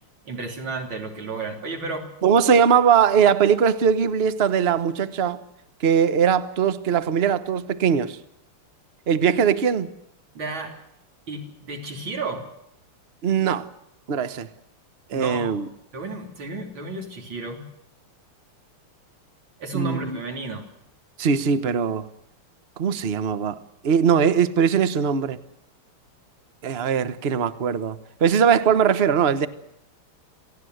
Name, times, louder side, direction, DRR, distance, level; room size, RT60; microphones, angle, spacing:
voice 1, 0.3-2.1 10.3-10.8 11.3-12.4 15.1-15.6 15.9-17.7 19.6-20.7, right 3 dB, 60° right, 4.2 m, -32 dB
voice 2, 2.2-5.4 5.8-8.2 9.1-9.9 13.2-13.7 14.1-14.5 15.1-15.7 19.7-20.2 21.2-22.1 22.8-23.6 23.8-25.4 26.6-29.5, right 7 dB, 40° right, 1.0 m, -20 dB
27.0 x 17.0 x 8.0 m
omnidirectional pair, 2.4 m